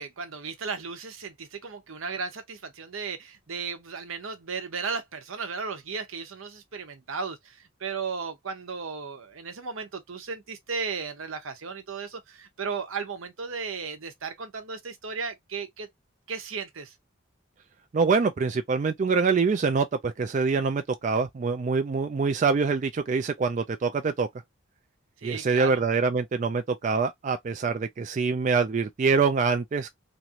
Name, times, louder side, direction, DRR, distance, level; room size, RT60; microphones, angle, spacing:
voice 1, 0.0-15.9 16.3-16.9 25.2-25.8, right 5 dB, 80° right, 0.8 m, -35 dB
voice 2, 17.9-24.3 25.2-29.9, right 4 dB, 35° right, 0.3 m, -25 dB
3.0 x 2.5 x 2.8 m
head